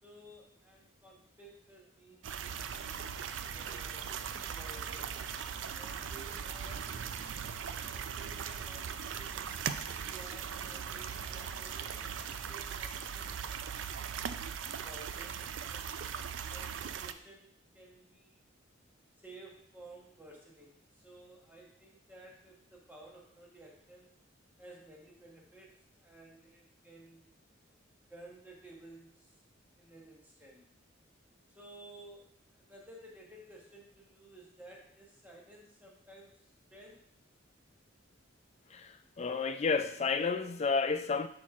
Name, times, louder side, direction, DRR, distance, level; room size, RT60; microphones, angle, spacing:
voice 1, 0.0-2.5 3.4-5.3 5.7-7.0 8.0-12.0 12.3-14.0 14.7-16.1 16.5-18.4 19.2-24.1 24.6-27.3 28.1-29.3 29.8-30.6 31.5-37.1, right 2 dB, 10° right, 1.3 m, -55 dB
sound 1, 2.2-17.1, right 7 dB, 65° right, 0.4 m, -39 dB
sound 2, 2.4-12.5, right 2 dB, 80° right, 1.3 m, -55 dB
voice 2, 38.7-41.3, left 4 dB, 35° left, 0.4 m, -31 dB
4.5 x 4.3 x 5.7 m
head